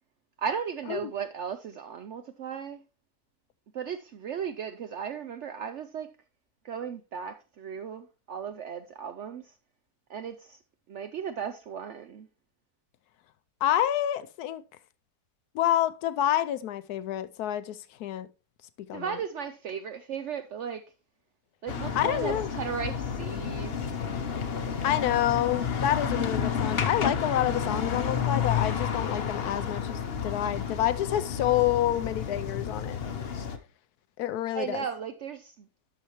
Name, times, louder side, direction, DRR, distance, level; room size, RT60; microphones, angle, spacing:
voice 1, 0.4-2.8 3.7-6.1 6.6-9.5 10.1-10.6 10.9-12.3 18.9-20.8 21.6-23.8 34.5-35.7, right 7 dB, 70° right, 0.7 m, -36 dB
voice 2, 13.6-14.6 15.5-18.3 18.9-19.2 22.0-22.5 24.8-33.0 34.2-34.8, left 12 dB, 75° left, 1.1 m, -28 dB
sound 1, 21.7-33.6, left 7 dB, 50° left, 0.8 m, -31 dB
12.0 x 5.6 x 3.0 m
omnidirectional pair, 1.7 m